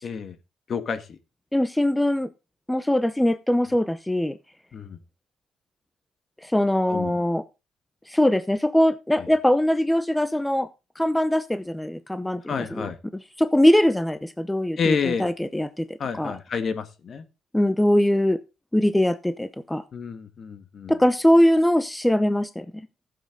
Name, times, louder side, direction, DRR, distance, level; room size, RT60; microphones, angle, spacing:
voice 1, 0.0-0.4 0.7-1.2 4.7-5.0 6.9-7.1 12.5-13.0 14.8-15.3 16.0-17.3 19.9-20.9, left 6 dB, 50° left, 10 dB, 1.7 m, -29 dB
voice 2, 1.5-2.3 2.7-4.4 6.4-7.4 8.1-10.7 11.0-16.3 17.5-18.4 18.7-19.8 20.9-22.9, left 1 dB, 5° left, 13 dB, 0.8 m, -22 dB
14.5 x 7.8 x 4.0 m, 0.28 s
cardioid pair, 90°, 0 cm